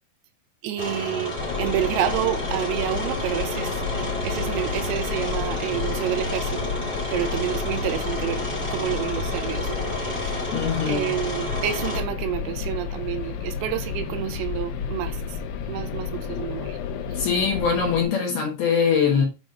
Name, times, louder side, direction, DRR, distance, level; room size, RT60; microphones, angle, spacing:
voice 1, 0.6-3.7 4.2-6.8 7.1-8.5 8.7-10.4 10.9-15.2 15.7-16.8, right 12 dB, 85° right, 3.5 m, -29 dB
sound 1, 0.8-12.0, equal, 30° right, 0.8 m, -31 dB
sound 2, 1.4-18.1, left 6 dB, 85° left, 2.2 m, -31 dB
voice 2, 10.5-11.1 17.1-19.2, left 6 dB, 70° left, 2.5 m, -22 dB
9.0 x 3.1 x 5.2 m
omnidirectional pair, 5.8 m